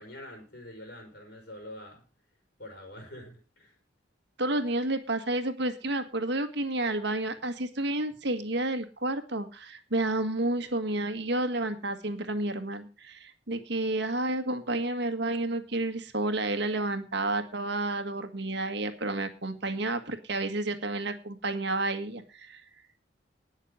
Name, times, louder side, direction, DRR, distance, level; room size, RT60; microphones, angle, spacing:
voice 1, 0.0-2.1 2.6-3.8, left 1 dB, 60° left, 2 dB, 4.6 m, -45 dB
voice 2, 4.4-22.6, right 2 dB, 65° right, 8 dB, 1.8 m, -30 dB
19.5 x 6.6 x 5.0 m, 0.33 s
head